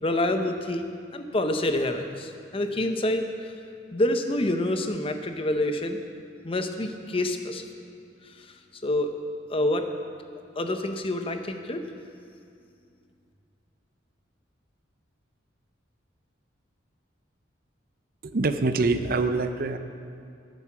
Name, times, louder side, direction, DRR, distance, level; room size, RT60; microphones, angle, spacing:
voice 1, 0.0-3.5 3.9-6.0 6.4-7.7 8.4-8.5 8.8-9.1 9.5-9.9 10.6-11.8, left 1 dB, 30° left, 6 dB, 0.6 m, -27 dB
voice 2, 18.2-19.8, right 3 dB, 50° right, 9 dB, 0.5 m, -25 dB
11.0 x 8.9 x 5.9 m, 2.4 s
head